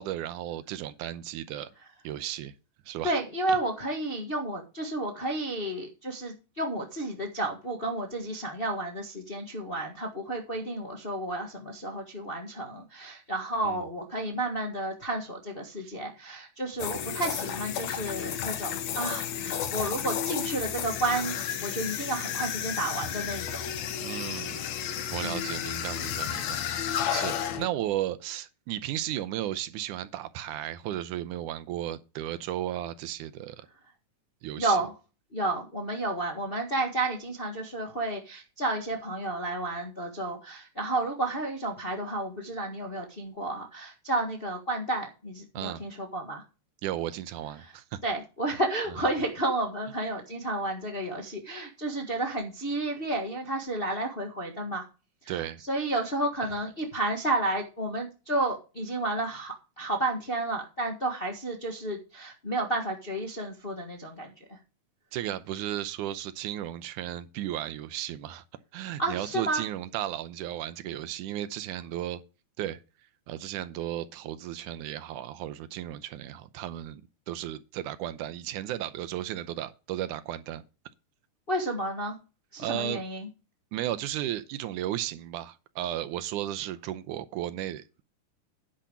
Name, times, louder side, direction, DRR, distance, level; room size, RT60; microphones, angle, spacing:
voice 1, 0.0-1.7 2.0-2.5 2.9-3.2 3.5-3.6 13.6-13.9 15.8-15.9 24.0-24.6 25.1-33.7 34.4-34.8 45.5-45.8 46.8-48.0 55.3-55.6 65.1-68.4 68.7-72.2 72.6-72.8 73.3-77.0 77.3-80.6 82.6-83.0 83.7-88.0, right 12 dB, 80° right, 2.1 m, -34 dB
voice 2, 3.0-23.7 25.2-25.5 34.6-34.9 35.3-46.4 47.6-47.7 48.0-54.9 55.2-64.3 69.0-69.6 81.5-82.2 82.5-83.3, right 2 dB, 35° left, 0.9 m, -31 dB
sound 1, 16.8-27.7, left 9 dB, 65° left, 2.1 m, -32 dB
10.0 x 5.0 x 7.1 m
omnidirectional pair, 3.7 m